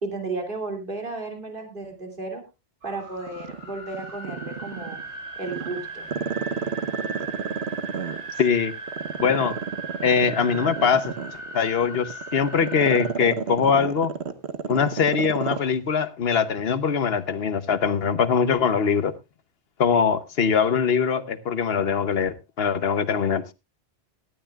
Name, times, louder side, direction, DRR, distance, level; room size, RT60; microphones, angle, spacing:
voice 1, 0.0-2.4 2.8-5.0 5.4-6.1, right 3 dB, 50° right, 3.0 m, -33 dB
sound 1, 2.8-13.1, right 3 dB, 85° right, 3.0 m, -38 dB
Growling, 3.3-5.0 5.4-8.4 8.9-15.7 16.0-16.1, right 6 dB, 70° right, 1.3 m, -30 dB
voice 2, 8.4-8.7 9.2-9.6 10.0-11.1 11.5-14.1 14.7-19.1 19.8-23.5, left 6 dB, 60° left, 1.1 m, -22 dB
18.0 x 12.5 x 2.3 m
omnidirectional pair, 1.2 m